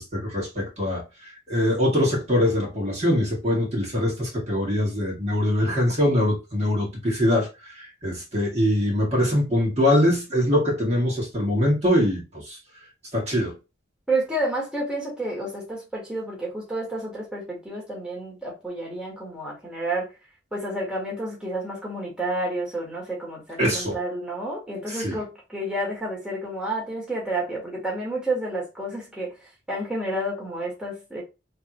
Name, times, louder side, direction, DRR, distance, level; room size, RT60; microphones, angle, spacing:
voice 1, 0.0-12.6 13.1-13.5 23.6-24.0 24.9-25.2, left 1 dB, 35° right, 2.0 m, -23 dB
voice 2, 14.1-20.1 20.5-31.2, right 1 dB, 5° right, 1.7 m, -30 dB
3.7 x 3.3 x 3.0 m
head